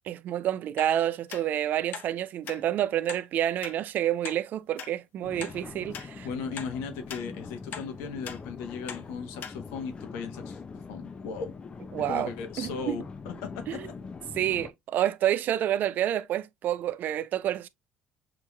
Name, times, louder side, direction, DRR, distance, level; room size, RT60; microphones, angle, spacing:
voice 1, 0.1-6.3 11.9-12.3 12.6-13.0 13.7-13.9 14.4-17.7, right 11 dB, 60° right, 0.4 m, -28 dB
sound 1, 0.8-0.9 1.3-1.4 1.9-2.1 2.5-2.6 3.1-3.2 3.6-3.8 4.2-4.4 4.8-4.9 5.4-5.6 5.9-6.1 6.6-6.7 7.1-7.2 7.7-7.9 8.2-8.4 8.9-9.0 9.4-9.6 10.0-10.1, left 7 dB, 55° left, 0.8 m, -39 dB
sound 2, 5.2-14.7, left 5 dB, 30° left, 0.5 m, -43 dB
voice 2, 6.2-10.6 10.9-11.5 12.1-13.8, left 5 dB, 90° left, 1.0 m, -37 dB
5.9 x 2.9 x 2.2 m
cardioid pair, 105°, 4 cm